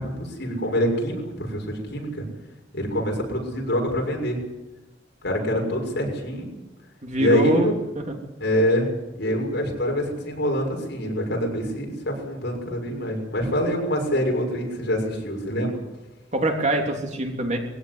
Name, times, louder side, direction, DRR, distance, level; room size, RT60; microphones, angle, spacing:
voice 1, 0.0-2.2 2.7-4.4 5.2-6.5 7.2-7.7 8.4-8.9 9.2-15.8, equal, 60° left, 1 dB, 6.5 m, -25 dB
voice 2, 7.0-7.7 8.0-8.1 16.3-17.6, right 1 dB, 40° right, 2 dB, 3.3 m, -23 dB
21.5 x 16.5 x 9.7 m, 1.0 s
head